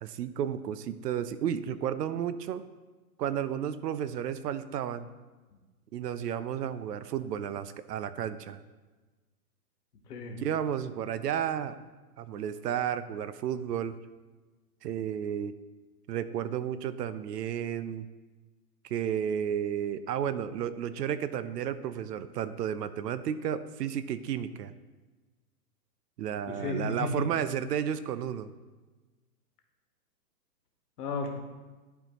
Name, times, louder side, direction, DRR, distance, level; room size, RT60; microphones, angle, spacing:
voice 1, 0.0-2.6 3.2-5.1 5.9-8.6 10.4-11.8 12.2-14.0 14.8-15.5 16.1-18.1 18.8-24.7 26.2-28.5, right 9 dB, 75° right, 14 dB, 0.6 m, -32 dB
voice 2, 10.1-10.4 26.5-27.2 31.0-31.4, left 4 dB, 70° left, 3 dB, 1.4 m, -33 dB
11.0 x 4.4 x 3.0 m, 1.3 s
hypercardioid pair, 170°, 49 cm